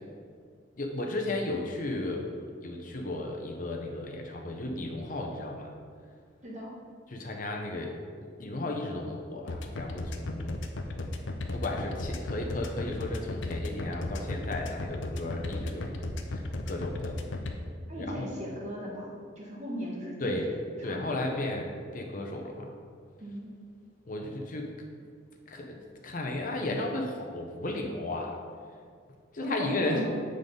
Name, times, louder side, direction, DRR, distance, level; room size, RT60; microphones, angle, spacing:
voice 1, 0.8-2.3 2.6-5.7 7.1-7.9 8.4-10.6 11.5-16.0 16.3-17.2 18.0-18.3 20.2-20.5 20.8-22.7 24.0-24.7 25.5-28.4 29.3-30.1, left 2 dB, 45° left, 2 dB, 0.8 m, -34 dB
voice 2, 6.4-6.8 17.9-20.5 20.8-21.3 23.2-23.6 29.4-30.1, equal, 40° right, -3 dB, 1.4 m, -37 dB
sound 1, 9.5-17.5, left 2 dB, 80° left, 0.6 m, -34 dB
8.0 x 3.9 x 5.2 m, 2.1 s
head